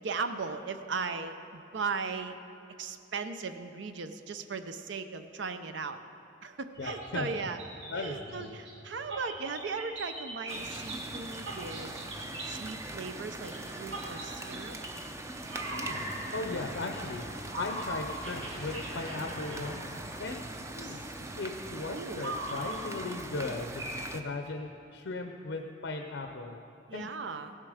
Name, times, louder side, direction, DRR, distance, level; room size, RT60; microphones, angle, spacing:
voice 1, 0.0-2.4 2.8-6.0 6.4-7.6 8.0-12.0 12.5-14.8 21.9-22.3 26.9-27.5, right 4 dB, 65° right, 9 dB, 0.6 m, -37 dB
sound 1, 6.7-12.9 13.5-15.1 15.4-21.0 22.0-22.8 23.4-23.5 23.8-23.9, right 1 dB, 85° right, 2.1 m, -41 dB
voice 2, 6.8-7.3 7.9-8.6 15.7-17.2 17.6-20.4 20.8-23.9 24.1-26.6 26.9-27.1, left 3 dB, 75° left, 4 dB, 0.6 m, -38 dB
sound 2, 10.5-24.2, right 2 dB, 15° right, 0.5 m, -42 dB
16.0 x 7.4 x 4.9 m, 2.8 s
head